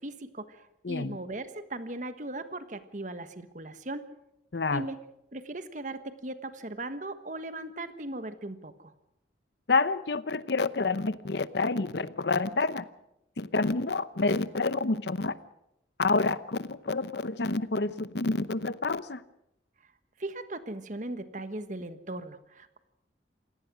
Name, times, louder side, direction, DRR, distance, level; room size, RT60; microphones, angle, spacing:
voice 1, 0.0-4.0 4.7-5.0 5.3-8.9 20.2-22.8, right 2 dB, 45° right, 11 dB, 1.4 m, -38 dB
voice 2, 0.8-1.2 4.5-4.9 9.7-12.8 13.4-15.4 16.0-19.2, left 3 dB, 70° left, 15 dB, 0.8 m, -28 dB
27.0 x 18.0 x 6.2 m, 0.85 s
head